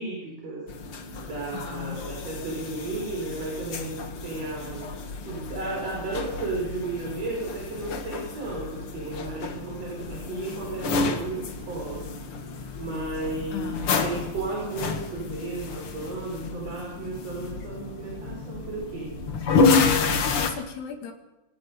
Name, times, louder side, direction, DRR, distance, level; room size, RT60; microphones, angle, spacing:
voice 1, 0.0-19.1, right 2 dB, 40° right, -2 dB, 5.7 m, -34 dB
sound 1, 0.7-20.5, left 4 dB, 50° left, 1.8 m, -30 dB
voice 2, 1.5-2.0 13.5-14.1 20.3-21.1, left 7 dB, 85° left, 4 dB, 4.5 m, -36 dB
25.5 x 20.0 x 5.4 m, 0.99 s
omnidirectional pair, 4.6 m